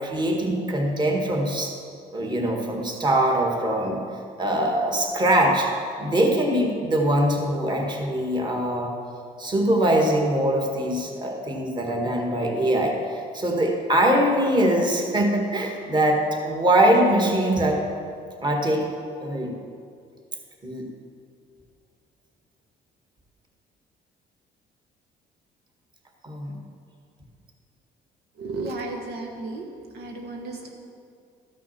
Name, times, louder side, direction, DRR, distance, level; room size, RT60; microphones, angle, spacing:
voice 1, 0.0-1.7 2.1-8.9 9.4-17.8 18.4-18.9 19.2-19.5 20.6-20.9 26.2-26.5, right 1 dB, 25° right, 1 dB, 1.8 m, -22 dB
voice 2, 28.4-30.7, right 2 dB, 75° right, 1 dB, 1.3 m, -34 dB
13.0 x 6.2 x 5.8 m, 2.4 s
cardioid pair, 110°, 17 cm